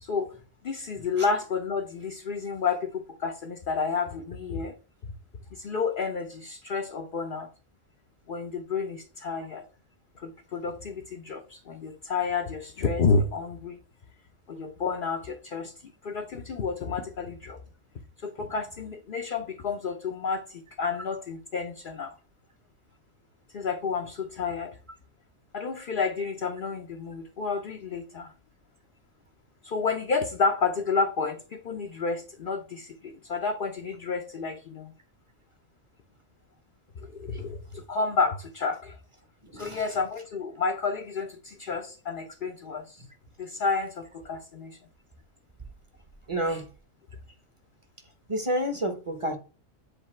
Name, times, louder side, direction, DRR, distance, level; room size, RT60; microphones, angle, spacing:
voice 1, 0.0-0.3 0.6-4.7 5.5-7.5 8.3-9.6 10.2-13.8 14.5-17.6 18.2-22.1 23.5-24.8 25.5-28.3 29.6-34.9 37.0-39.0 39.5-43.0 43.4-44.8 46.5-46.6, left 4 dB, 50° left, 0.7 m, -30 dB
voice 2, 39.4-40.0 43.0-43.1 43.5-43.6 46.3-46.7 48.3-49.4, equal, 25° right, 0.9 m, -30 dB
7.9 x 2.7 x 4.3 m
omnidirectional pair, 1.4 m